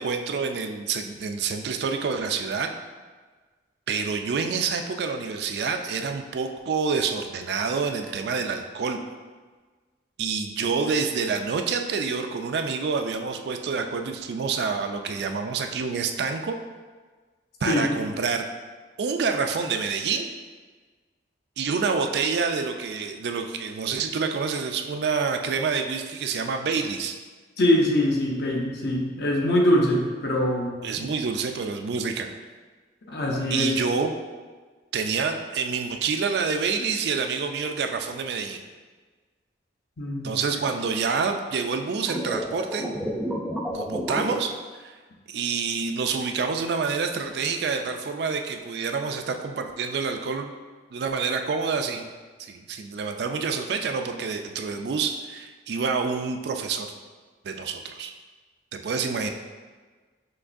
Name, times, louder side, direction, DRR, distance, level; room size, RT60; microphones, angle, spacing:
voice 1, 0.0-2.7 3.9-9.0 10.2-16.6 17.6-18.4 19.0-20.3 21.6-27.2 30.8-32.3 33.5-34.1 34.9-38.6 40.2-42.9 43.7-44.5 44.8-45.0 45.3-50.5 50.9-52.1 52.4-56.9 57.4-58.1 58.7-59.3, right 5 dB, 60° right, 6 dB, 0.3 m, -27 dB
voice 2, 27.6-31.1 33.1-33.7 40.0-40.6, left 1 dB, 60° left, -1 dB, 0.7 m, -23 dB
sound 1, 42.1-44.3, equal, ahead, 0.5 m, -29 dB
5.9 x 3.1 x 2.6 m, 1.4 s
head